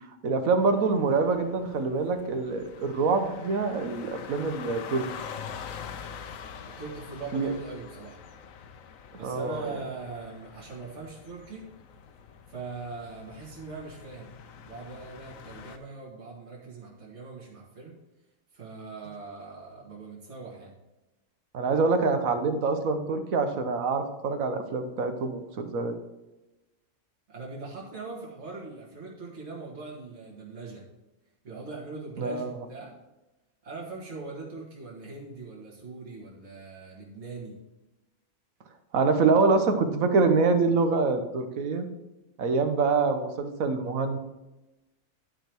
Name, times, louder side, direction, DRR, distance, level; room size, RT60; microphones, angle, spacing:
voice 1, 0.2-5.0 7.3-7.5 9.2-9.6 21.5-26.0 32.2-32.5 38.9-41.9 42.4-44.2, right 4 dB, 75° right, 7 dB, 1.4 m, -25 dB
sound 1, 0.6-15.8, left 7 dB, 70° left, 1.1 m, -45 dB
voice 2, 6.8-8.2 9.2-11.7 12.5-14.4 14.6-17.9 18.5-20.7 27.3-30.9 31.4-33.0 33.6-37.6, right 4 dB, 50° right, -4 dB, 2.2 m, -41 dB
11.0 x 5.1 x 4.5 m, 1.0 s
omnidirectional pair, 1.5 m